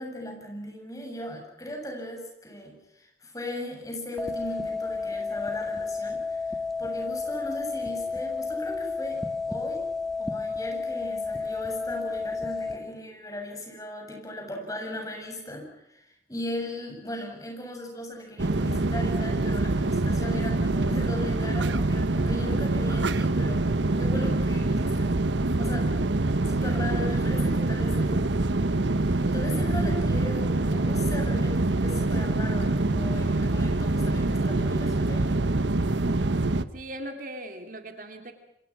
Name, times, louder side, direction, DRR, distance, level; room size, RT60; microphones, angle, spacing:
voice 1, 0.0-9.2 9.5-9.8 10.2-23.6 24.0-25.1 25.6-25.9 26.4-28.3 29.2-35.4, left 1 dB, 20° left, 1 dB, 7.8 m, -38 dB
sound 1, 4.2-12.8, left 4 dB, ahead, 1.9 m, -31 dB
sound 2, 18.4-36.6, right 2 dB, 85° right, 1.1 m, -25 dB
voice 2, 36.7-38.3, right 1 dB, 50° right, 6 dB, 2.5 m, -39 dB
28.0 x 26.0 x 6.1 m, 0.82 s
head